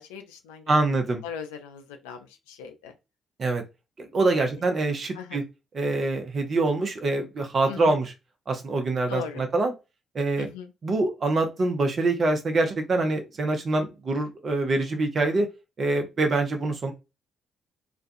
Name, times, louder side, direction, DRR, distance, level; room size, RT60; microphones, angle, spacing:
voice 1, 0.0-0.9 1.2-2.9 4.3-4.6 5.1-5.5 7.7-8.0 9.1-9.4 10.4-10.7, left 7 dB, 75° left, 0.4 m, -39 dB
voice 2, 0.7-1.2 3.4-3.6 4.0-5.4 5.7-8.0 8.5-9.7 10.1-10.5 10.8-15.5 15.8-16.9, right 2 dB, 45° right, 0.7 m, -25 dB
2.4 x 2.3 x 2.6 m
figure-of-eight pair, 40°, 0 cm